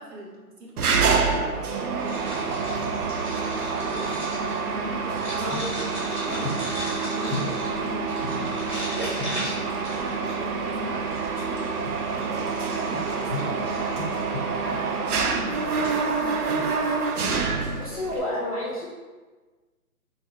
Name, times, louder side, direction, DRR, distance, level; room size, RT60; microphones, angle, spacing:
voice 1, 0.0-1.5 2.0-4.1 4.6-5.5 5.9-8.9 9.5-11.7 12.2-14.0 14.6-16.7, equal, 85° right, -3 dB, 1.1 m, -40 dB
Mechanisms, 0.8-18.2, right 4 dB, 70° right, 0.6 m, -27 dB
sound 1, 2.0-10.6 11.1-14.2 14.9-15.2 15.4-15.5 15.8-16.2, equal, 5° right, 1.0 m, -38 dB
sound 2, 2.6-18.2, left 1 dB, 45° right, 0.9 m, -39 dB
voice 2, 17.8-18.9, left 1 dB, 25° left, -7 dB, 0.5 m, -30 dB
2.8 x 2.1 x 3.8 m, 1.3 s
hypercardioid pair, 155°, 46 cm